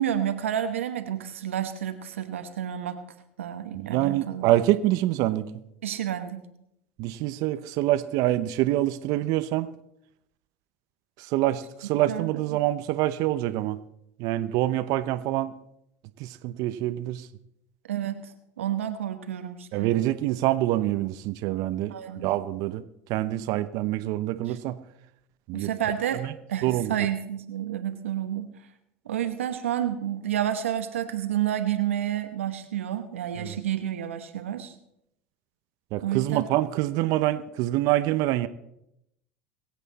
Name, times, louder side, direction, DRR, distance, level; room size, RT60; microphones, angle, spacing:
voice 1, 0.0-3.0 3.4-4.4 5.8-6.4 12.1-12.6 17.9-20.0 21.9-22.3 24.5-24.6 25.5-26.2 26.5-28.5 29.0-34.7 36.0-36.4, right 10 dB, 85° right, 8 dB, 1.2 m, -30 dB
voice 2, 3.7-5.5 7.0-9.7 11.2-13.8 14.2-15.5 16.2-17.3 19.7-22.8 23.1-24.8 25.5-25.7 26.1-26.3 26.6-26.9 33.4-33.6 35.9-38.5, right 15 dB, 60° right, 12 dB, 0.8 m, -26 dB
23.0 x 8.2 x 4.2 m, 0.78 s
hypercardioid pair, 80°, 7 cm